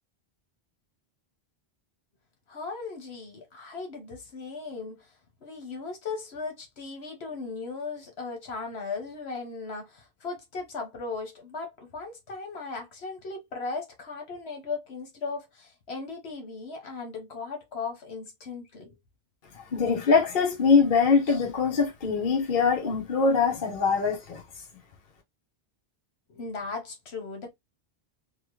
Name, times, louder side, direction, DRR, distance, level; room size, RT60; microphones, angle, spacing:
voice 1, 2.5-5.1 5.4-19.0 26.3-27.5, left 4 dB, 80° left, 1.3 m, -37 dB
voice 2, 19.5-24.4, left 5 dB, 55° left, 1.0 m, -23 dB
3.0 x 2.2 x 3.0 m
omnidirectional pair, 1.1 m